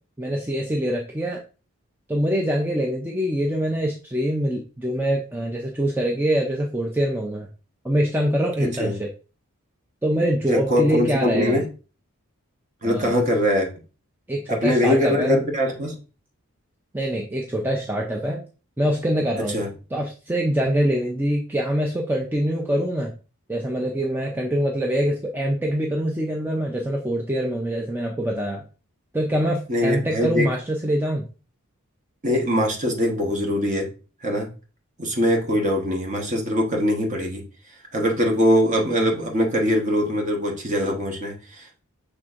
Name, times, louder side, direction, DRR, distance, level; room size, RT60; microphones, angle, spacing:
voice 1, 0.2-1.4 2.1-7.5 7.8-9.1 10.0-11.6 12.8-13.2 14.3-15.4 16.9-18.4 18.8-19.6 19.9-23.1 23.5-28.6 29.1-31.3, equal, 10° right, 0 dB, 0.4 m, -24 dB
voice 2, 8.6-9.0 10.5-11.6 12.8-13.7 14.5-16.0 19.5-19.7 29.7-30.5 32.2-33.9 34.2-34.5 35.0-37.4 37.9-41.8, equal, 35° right, 1 dB, 1.0 m, -22 dB
6.0 x 3.4 x 2.4 m, 0.34 s
head